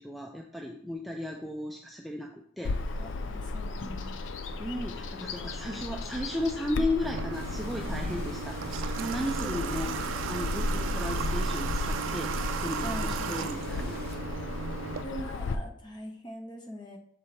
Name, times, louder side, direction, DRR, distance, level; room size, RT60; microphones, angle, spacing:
voice 1, 0.0-2.8 4.4-14.0, left 1 dB, ahead, 1 dB, 0.3 m, -35 dB
Bird vocalization bird call bird song, 2.6-15.5, left 2 dB, 70° left, 0.4 m, -34 dB
voice 2, 3.0-4.2 9.3-9.9 12.8-13.5 15.0-17.0, equal, 20° left, 2 dB, 0.7 m, -42 dB
Water / Water tap faucet, 7.0-15.0, right 6 dB, 75° right, 0.3 m, -35 dB
sound 1, 7.3-14.2, left 1 dB, 50° left, 1.4 m, -47 dB
6.8 x 4.3 x 3.2 m, 0.67 s
head